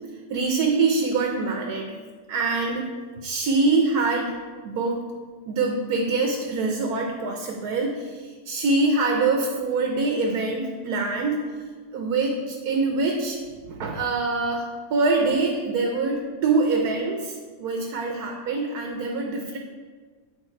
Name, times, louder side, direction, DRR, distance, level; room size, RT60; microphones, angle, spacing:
voice 1, 0.3-1.9 2.3-2.9 3.2-4.3 4.6-5.0 5.5-11.4 11.9-13.4 13.7-19.6, right 3 dB, 70° right, 1 dB, 1.3 m, -24 dB
8.9 x 5.2 x 4.5 m, 1.5 s
omnidirectional pair, 1.7 m